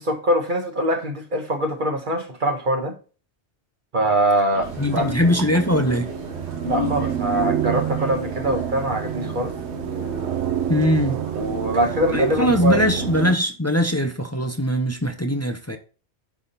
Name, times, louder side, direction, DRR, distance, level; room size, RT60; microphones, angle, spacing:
voice 1, 0.0-3.0 3.9-5.1 6.6-9.5 11.3-12.9, right 1 dB, 45° right, 1.5 m, -23 dB
sound 1, 4.5-13.3, left 3 dB, 55° left, 3.3 m, -36 dB
sound 2, 4.6-13.3, right 10 dB, 80° right, 1.0 m, -28 dB
voice 2, 4.8-6.1 10.7-11.2 12.1-15.8, equal, 15° left, 0.8 m, -21 dB
11.0 x 3.7 x 4.2 m
omnidirectional pair, 1.1 m